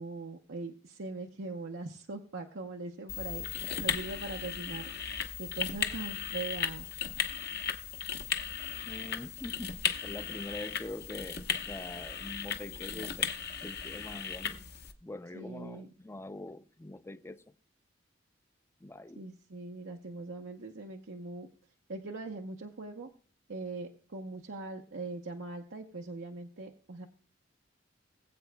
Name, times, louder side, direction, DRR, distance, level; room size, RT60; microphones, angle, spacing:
voice 1, 0.0-6.9 15.3-15.9 19.2-21.5 21.9-23.1 23.5-27.1, right 3 dB, 90° right, 0.9 m, -41 dB
old telephone dialing disc unfiltered, 3.1-14.9, left 7 dB, 55° left, 1.0 m, -36 dB
voice 2, 8.9-9.8 10.0-13.3 13.6-14.7 15.0-17.4 18.8-19.3, left 2 dB, 15° left, 0.5 m, -44 dB
21.0 x 8.0 x 2.2 m
head